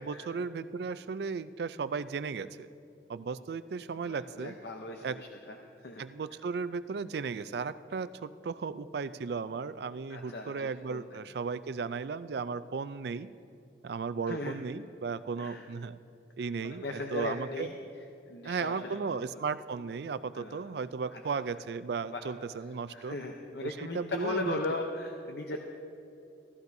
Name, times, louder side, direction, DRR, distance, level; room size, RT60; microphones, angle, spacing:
voice 1, 0.0-2.7 3.1-4.5 5.0-5.2 6.0-13.3 13.8-16.0 16.4-17.7 18.4-23.2 23.6-24.6, right 5 dB, 65° right, 14 dB, 0.4 m, -35 dB
voice 2, 4.0-5.6 5.8-6.0 10.1-11.2 14.3-14.7 15.4-15.7 16.6-17.8 18.3-19.4 20.3-20.7 21.1-21.2 22.1-22.2 22.9-25.6, left 2 dB, 65° left, 2 dB, 0.7 m, -38 dB
16.0 x 14.5 x 2.7 m, 2.8 s
head